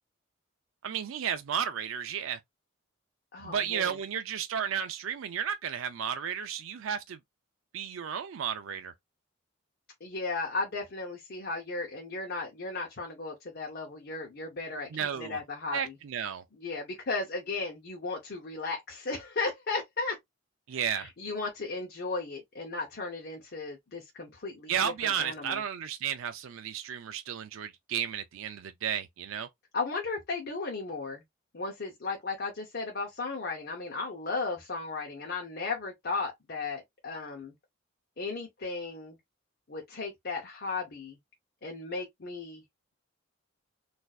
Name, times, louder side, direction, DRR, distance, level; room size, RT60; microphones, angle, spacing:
voice 1, 0.8-2.4 3.4-7.2 7.7-8.9 14.9-15.4 15.7-16.4 20.7-21.1 24.7-29.5, right 8 dB, 75° right, 0.4 m, -33 dB
voice 2, 3.3-4.0 10.0-14.9 15.1-15.9 16.6-20.2 20.9-25.6 29.7-31.2 31.5-37.5 38.2-39.2 39.7-41.2 41.6-42.6, left 3 dB, 50° left, 0.7 m, -35 dB
4.1 x 2.6 x 2.4 m
head